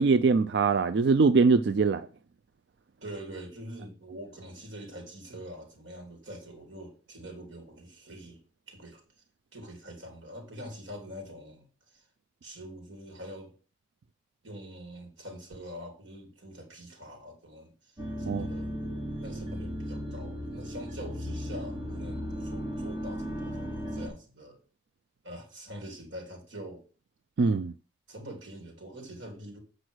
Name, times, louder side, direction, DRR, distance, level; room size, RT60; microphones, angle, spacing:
voice 1, 0.0-2.1 18.3-18.5 27.4-27.7, right 4 dB, 60° right, 0.4 m, -22 dB
voice 2, 3.0-8.4 8.7-9.0 9.5-12.1 12.4-13.6 14.4-18.7 19.2-24.6 25.2-26.9 28.1-29.6, equal, 80° right, 3.4 m, -44 dB
sound 1, 18.0-24.1, equal, 25° right, 2.4 m, -36 dB
7.8 x 5.0 x 6.3 m
head